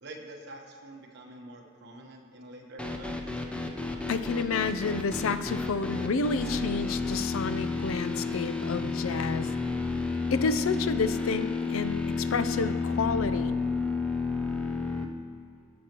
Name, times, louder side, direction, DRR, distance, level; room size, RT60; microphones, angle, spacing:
voice 1, 0.0-3.4, right 1 dB, 55° right, 1 dB, 1.1 m, -46 dB
sound 1, 2.8-15.0, left 4 dB, 5° left, 0.6 m, -31 dB
voice 2, 4.1-9.5 10.3-13.6, left 4 dB, 85° left, 12 dB, 0.5 m, -30 dB
17.0 x 6.4 x 3.0 m, 2.1 s
head